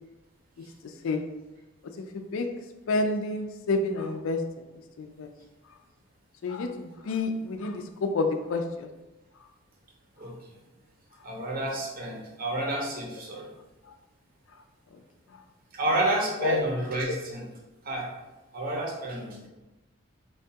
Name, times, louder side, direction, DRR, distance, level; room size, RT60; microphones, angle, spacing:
voice 1, 0.8-1.2 2.0-2.5 2.9-4.6 5.0-5.3 6.4-8.9 15.3-15.4 16.4-16.6, left 3 dB, 65° left, 6 dB, 0.3 m, -29 dB
voice 2, 11.2-13.5 15.7-17.4 17.8-18.1 18.5-19.5, right 1 dB, 40° right, -1 dB, 0.6 m, -30 dB
4.6 x 2.2 x 2.7 m, 1.1 s
head